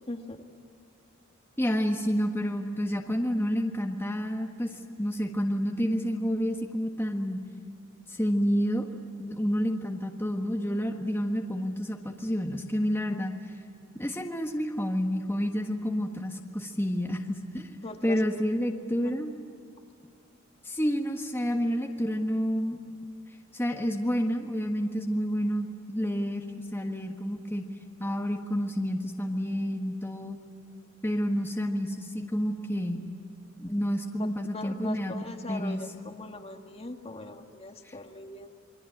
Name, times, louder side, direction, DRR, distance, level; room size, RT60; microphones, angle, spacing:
voice 1, 0.1-0.4 17.8-18.2 19.0-19.1 34.2-38.5, left 2 dB, 30° left, 4 dB, 1.7 m, -41 dB
voice 2, 1.6-7.4 8.1-8.9 9.2-13.3 14.0-17.8 18.0-19.3 20.6-22.8 23.5-26.4 26.7-27.6 28.0-30.4 31.0-33.1 33.6-35.1 35.5-35.8 37.8-37.9, equal, 10° left, 2 dB, 1.6 m, -29 dB
28.5 x 22.5 x 8.8 m, 2.4 s
head